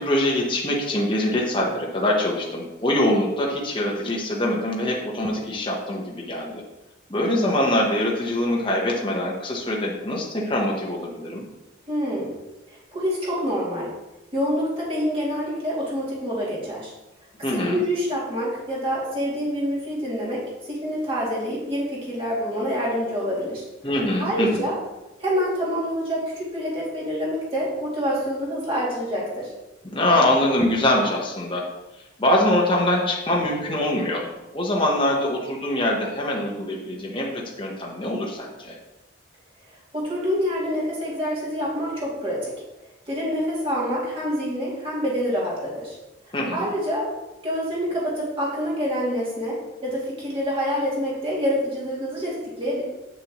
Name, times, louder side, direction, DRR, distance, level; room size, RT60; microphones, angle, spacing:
voice 1, 0.0-6.6 7.1-11.4 17.4-17.8 23.8-24.6 29.9-31.7 32.0-34.3 34.5-38.7 46.3-46.7, left 1 dB, 25° left, -2 dB, 1.2 m, -23 dB
voice 2, 11.9-12.3 12.7-13.9 14.3-16.9 17.5-23.6 24.2-24.8 25.2-29.5 39.9-42.5 43.1-45.9 46.5-47.1 47.4-52.8, equal, 30° right, -6 dB, 2.7 m, -26 dB
8.8 x 6.8 x 3.1 m, 1.0 s
head